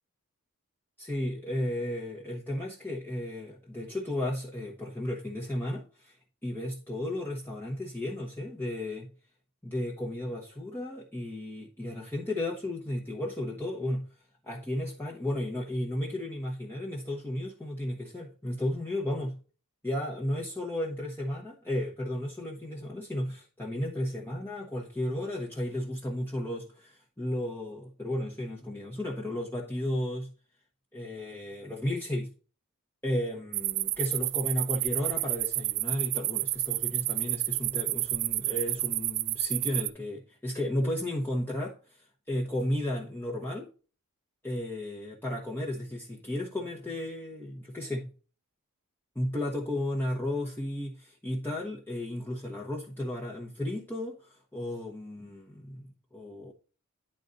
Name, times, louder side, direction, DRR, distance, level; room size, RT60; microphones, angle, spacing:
voice 1, 1.0-6.2 6.4-9.1 9.6-14.1 14.4-19.4 19.8-30.3 30.9-32.3 33.0-43.7 44.4-48.1 49.1-56.5, left 1 dB, 10° left, 1.2 m, -34 dB
sound 1, 33.5-39.9, right 18 dB, 50° right, 0.3 m, -30 dB
10.0 x 4.0 x 3.9 m
head